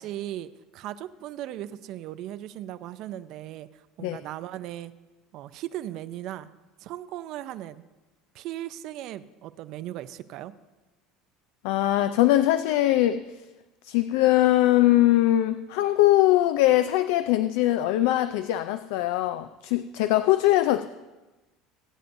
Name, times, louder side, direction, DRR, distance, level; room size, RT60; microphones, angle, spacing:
voice 1, 0.0-4.9 5.3-6.5 6.8-7.8 8.3-10.5, right 13 dB, 50° right, 14 dB, 0.5 m, -37 dB
voice 2, 11.6-13.2 13.8-20.8, left 14 dB, 75° left, 11 dB, 0.4 m, -21 dB
22.0 x 9.1 x 2.6 m, 1.1 s
cardioid pair, 160°, 0 cm